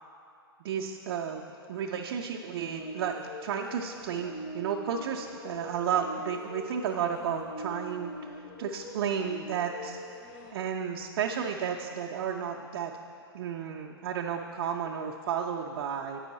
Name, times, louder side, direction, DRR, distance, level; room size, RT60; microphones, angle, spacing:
voice 1, 0.6-1.4 1.7-10.0 10.5-12.9 13.3-16.2, right 7 dB, 55° right, 0 dB, 0.5 m, -32 dB
sound 1, 2.7-10.5, equal, 40° left, 1.0 m, -43 dB
7.9 x 5.5 x 4.1 m, 2.4 s
hypercardioid pair, 110°, 13 cm